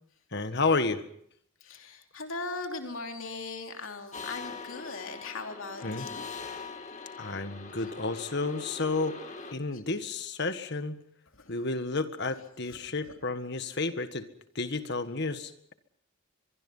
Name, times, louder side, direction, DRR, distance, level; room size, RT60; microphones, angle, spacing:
voice 1, 0.3-1.0 5.8-6.1 7.2-9.2 9.5-11.0 11.5-14.3 14.5-15.7, left 3 dB, 55° left, 10 dB, 1.6 m, -31 dB
voice 2, 1.6-6.3 9.7-9.8 11.3-11.5 12.7-12.8, left 3 dB, 75° left, 4 dB, 2.8 m, -39 dB
sound 1, 4.1-9.5, left 4 dB, 35° left, 2.1 m, -42 dB
24.0 x 23.0 x 5.6 m, 0.68 s
head